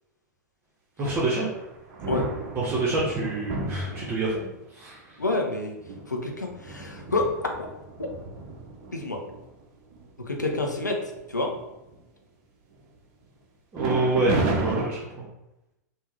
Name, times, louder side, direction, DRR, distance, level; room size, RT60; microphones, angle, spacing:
voice 1, 1.0-1.5 2.5-4.4 4.7-5.2 13.7-15.2, right 2 dB, 25° right, -6 dB, 1.1 m, -27 dB
sound 1, 1.5-4.5 5.2-5.3 5.8-9.4 9.9-10.1 10.4-10.8 11.2-12.0 13.8-14.9, right 3 dB, 40° right, 0.8 m, -33 dB
voice 2, 5.2-5.7 6.1-7.3 8.0-8.1 8.9-9.2 10.3-11.0 11.3-11.5, left 2 dB, 85° left, 2 dB, 0.7 m, -28 dB
3.6 x 2.8 x 4.4 m, 0.91 s
figure-of-eight pair, 95°, 9 cm